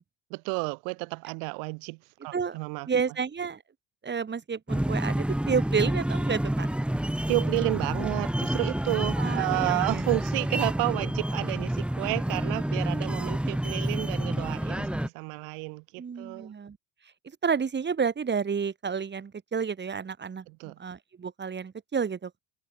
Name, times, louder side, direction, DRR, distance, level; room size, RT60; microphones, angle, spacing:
voice 1, 0.3-2.9 7.3-16.5 20.5-20.8, right 39 dB, 75° right, 1.0 m, -31 dB
voice 2, 2.9-3.6 4.0-6.7 9.2-10.1 16.0-16.8 17.4-20.5 20.8-22.4, right 6 dB, 30° right, 3.6 m, -30 dB
sound 1, 4.7-15.1, right 1 dB, 5° right, 1.4 m, -28 dB
hypercardioid pair, 75°, 34 cm